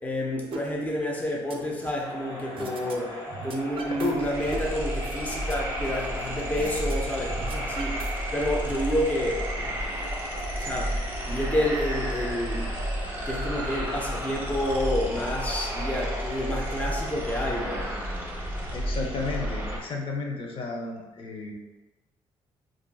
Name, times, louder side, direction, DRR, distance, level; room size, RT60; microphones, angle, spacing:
voice 1, 0.0-8.0 8.3-9.8 10.5-11.0 11.3-12.7 13.3-17.9, left 1 dB, 15° left, -2 dB, 0.6 m, -29 dB
sound 1, 0.5-0.6 1.0-2.1 2.6-3.0 3.2-4.1 4.4-6.1 6.6-6.9 7.2-8.5, right 5 dB, 50° right, 0.4 m, -40 dB
Crowd, 1.8-18.0, equal, 90° left, 1.3 m, -39 dB
sound 2, 2.8-2.9 3.1-19.8, equal, 20° right, 0.8 m, -32 dB
voice 2, 18.7-21.5, left 3 dB, 55° left, 0 dB, 0.7 m, -32 dB
3.5 x 2.5 x 2.3 m, 1.1 s
supercardioid pair, 75°, 11 cm